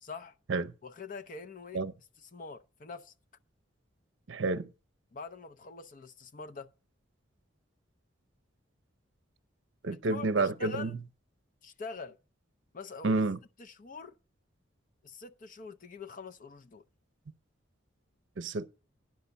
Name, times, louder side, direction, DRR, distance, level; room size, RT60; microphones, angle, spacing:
voice 1, 0.0-0.3 0.8-1.8 2.2-3.1 5.1-6.7 9.9-10.9 11.6-12.2 12.7-13.2 13.6-14.2 15.0-16.8, left 4 dB, 45° left, 0.6 m, -44 dB
voice 2, 4.3-4.7 9.8-10.9 13.0-13.4 18.4-18.7, right 3 dB, 65° right, 0.6 m, -29 dB
10.5 x 5.4 x 7.0 m
head